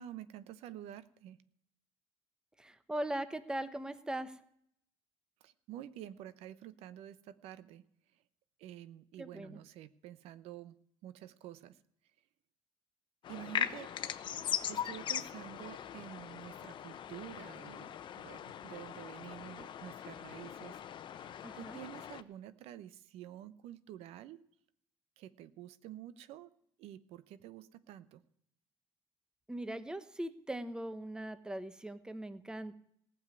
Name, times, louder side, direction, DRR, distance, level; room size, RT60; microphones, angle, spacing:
voice 1, 0.0-1.4 5.4-7.8 8.6-10.7 11.0-11.8 13.3-13.9 14.7-20.8 21.0-21.3 21.5-24.4 25.2-26.5 26.8-28.2, right 12 dB, 80° right, 14 dB, 0.8 m, -49 dB
voice 2, 2.6-4.4 9.2-9.6 21.4-21.8 29.5-32.8, right 1 dB, 5° right, 12 dB, 0.9 m, -40 dB
sound 1, 13.2-22.2, left 9 dB, 50° left, 0.8 m, -40 dB
15.5 x 7.2 x 9.6 m, 0.70 s
cardioid pair, 115°, 10 cm